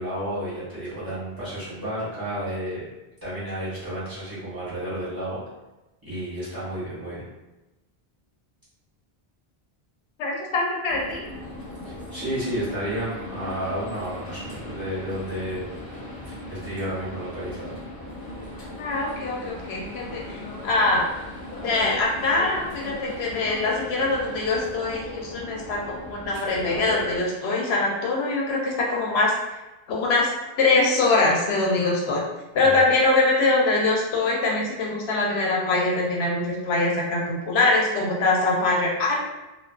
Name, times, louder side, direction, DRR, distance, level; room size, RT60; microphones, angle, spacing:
voice 1, 0.0-2.8 3.2-5.4 6.0-7.3 11.8-15.8 16.3-17.8 32.6-32.7, equal, 20° right, -10 dB, 1.0 m, -31 dB
voice 2, 10.2-11.2 18.8-21.1 21.6-29.3 29.9-30.3 30.6-32.2 32.5-39.2, left 2 dB, 85° left, -2 dB, 0.8 m, -23 dB
sound 1, 10.9-27.2, left 1 dB, 45° left, 0.9 m, -38 dB
2.3 x 2.3 x 2.3 m, 1.0 s
omnidirectional pair, 1.1 m